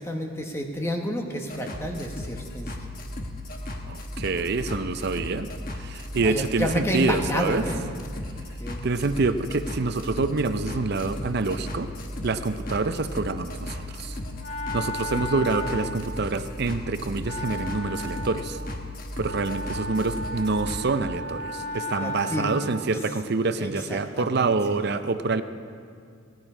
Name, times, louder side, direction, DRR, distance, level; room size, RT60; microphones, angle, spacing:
voice 1, 0.0-2.8 6.2-7.8 8.6-8.8 22.0-22.5 23.6-24.5, equal, 10° left, 3 dB, 1.1 m, -30 dB
sound 1, 1.5-20.8, left 1 dB, 40° left, 1.1 m, -36 dB
voice 2, 3.9-7.7 8.8-11.9 12.2-14.2 14.7-18.6 19.2-25.4, right 3 dB, 50° right, 11 dB, 0.5 m, -26 dB
Wind instrument woodwind instrument, 13.9-23.0, left 1 dB, 80° left, 2.2 m, -36 dB
17.5 x 10.5 x 4.9 m, 2.2 s
head